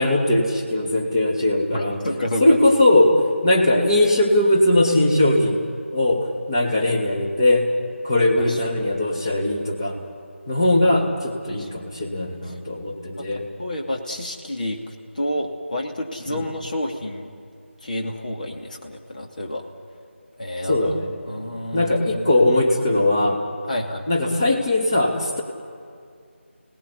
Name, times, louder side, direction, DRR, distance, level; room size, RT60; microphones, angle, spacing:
voice 1, 0.0-2.0 2.4-7.7 8.0-10.0 10.5-13.5 16.3-16.5 20.7-21.1 21.7-23.4 24.1-25.4, left 1 dB, 20° left, 0 dB, 2.6 m, -20 dB
voice 2, 1.7-2.6 6.7-6.8 8.5-8.6 11.5-11.7 13.1-17.3 17.8-19.6 20.4-20.9 21.3-22.3 23.7-24.1, left 1 dB, 40° left, 2 dB, 2.6 m, -29 dB
30.0 x 18.5 x 10.0 m, 2.3 s
figure-of-eight pair, 165°, 7 cm